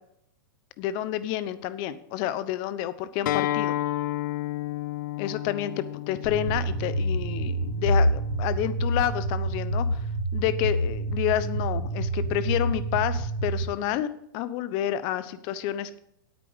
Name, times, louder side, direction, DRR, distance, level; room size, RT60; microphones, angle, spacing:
voice 1, 0.8-3.8 5.2-10.0 10.3-16.0, left 12 dB, 45° left, 14 dB, 0.9 m, -29 dB
Acoustic guitar, 3.3-8.5, left 15 dB, 65° left, 0.5 m, -32 dB
sound 1, 6.2-13.6, right 1 dB, 85° left, 3.1 m, -27 dB
9.2 x 9.2 x 5.1 m, 0.74 s
hypercardioid pair, 130°, 11 cm